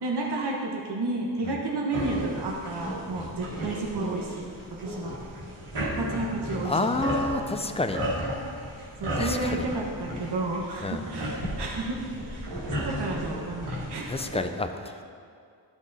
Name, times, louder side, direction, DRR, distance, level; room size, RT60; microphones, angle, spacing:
voice 1, 0.0-4.4 4.8-5.1 5.7-7.0 7.3-7.4 9.0-14.1, right 2 dB, 60° right, -1 dB, 1.2 m, -32 dB
sound 1, 1.9-14.4, equal, 85° right, 2.7 m, -34 dB
voice 2, 6.6-8.0 9.2-9.7 10.8-11.0 14.1-15.0, left 2 dB, 15° left, 7 dB, 0.3 m, -29 dB
13.5 x 6.1 x 4.0 m, 2.2 s
wide cardioid pair, 175°, 44 cm